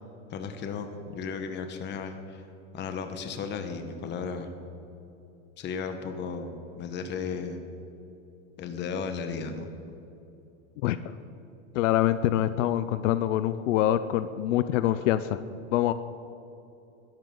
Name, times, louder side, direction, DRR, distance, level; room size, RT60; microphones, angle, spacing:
voice 1, 0.3-2.4 2.7-4.5 5.6-7.6 8.6-9.7, left 5 dB, 30° left, 7 dB, 1.2 m, -35 dB
voice 2, 11.7-15.4 15.7-15.9, left 12 dB, 75° left, 13 dB, 0.6 m, -25 dB
20.5 x 12.0 x 3.8 m, 2.8 s
supercardioid pair, 150°, 38 cm